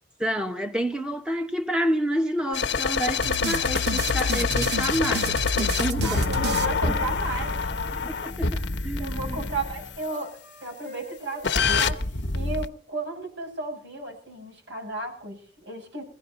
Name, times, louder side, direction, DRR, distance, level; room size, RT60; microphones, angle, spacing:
voice 1, 0.2-6.6 6.9-7.0 8.0-9.5, equal, 5° right, 1.5 m, -29 dB
sound 1, 2.5-10.0 11.4-12.7, left 4 dB, 80° left, 1.1 m, -26 dB
sound 2, 3.2-7.5, equal, 70° right, 1.2 m, -30 dB
Wind instrument woodwind instrument, 5.4-8.7 9.1-12.5, left 1 dB, 35° right, 6.1 m, -48 dB
voice 2, 6.0-7.7 9.0-12.1 12.3-16.0, right 2 dB, 85° right, 7.2 m, -34 dB
22.0 x 16.0 x 4.1 m
head